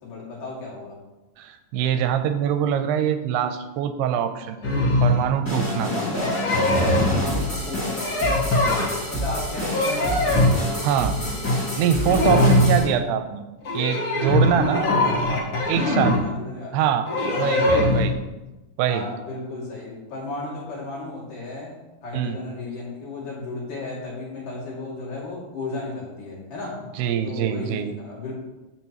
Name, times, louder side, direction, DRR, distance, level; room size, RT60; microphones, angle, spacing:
voice 1, 0.0-1.0 5.8-6.2 7.0-8.7 9.0-10.4 14.5-16.8 17.3-17.9 18.9-21.8 22.0-26.8 27.2-28.3, left 2 dB, 55° left, -6 dB, 3.9 m, -34 dB
voice 2, 1.4-4.6 5.0-5.9 10.8-11.2 11.8-13.4 13.7-14.8 15.7-16.2 16.7-17.1 17.4-18.1 18.8-19.0 22.1-22.4 27.0-27.9, right 8 dB, 90° right, 9 dB, 2.6 m, -23 dB
sound 1, 4.6-5.3 6.1-7.2 8.0-9.2 9.6-10.6 11.2-11.6 11.9-12.9 13.6-16.2 17.1-18.1, left 1 dB, 80° left, 1.1 m, -21 dB
sound 2, 5.4-12.8, left 1 dB, 20° left, 0.5 m, -28 dB
14.0 x 6.1 x 3.0 m, 1.1 s
omnidirectional pair, 4.6 m